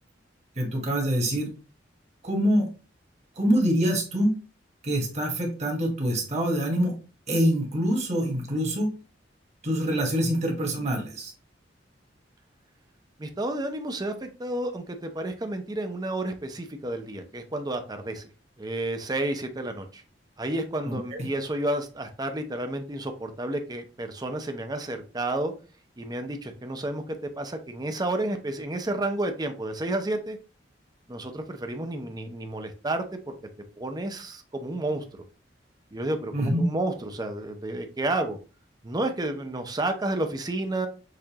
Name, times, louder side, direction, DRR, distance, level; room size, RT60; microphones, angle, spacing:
voice 1, 0.6-1.5 2.2-2.7 3.4-4.4 4.8-6.9 7.3-8.9 9.6-11.3 20.9-21.2 36.3-36.7, equal, 40° right, 1 dB, 1.3 m, -25 dB
voice 2, 13.2-18.3 18.6-20.0 20.4-25.5 26.0-30.4 31.1-33.3 33.8-35.0 35.9-38.4 38.8-40.9, right 1 dB, 20° right, 6 dB, 0.6 m, -31 dB
6.6 x 2.4 x 2.9 m, 0.36 s
head